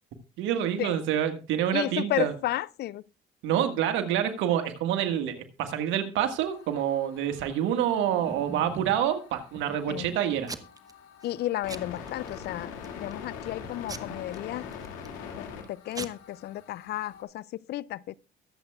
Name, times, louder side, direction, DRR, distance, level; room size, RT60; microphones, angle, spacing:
voice 1, 0.4-2.3 3.4-10.5, right 10 dB, 75° right, 1.7 m, -27 dB
voice 2, 1.7-3.0 9.9-10.1 11.2-14.7 15.7-18.1, left 14 dB, 55° left, 0.4 m, -33 dB
sound 1, 6.4-17.2, left 7 dB, 80° left, 2.3 m, -44 dB
Packing tape duct tape / Tearing, 7.7-9.1 9.5-10.0 10.5-10.9 11.2-11.4 11.7-12.4 12.8-13.2 13.9-15.2 15.6-15.7 15.9-16.1, right 3 dB, 20° right, 1.0 m, -41 dB
22.5 x 7.8 x 2.3 m
supercardioid pair, 80°, 20 cm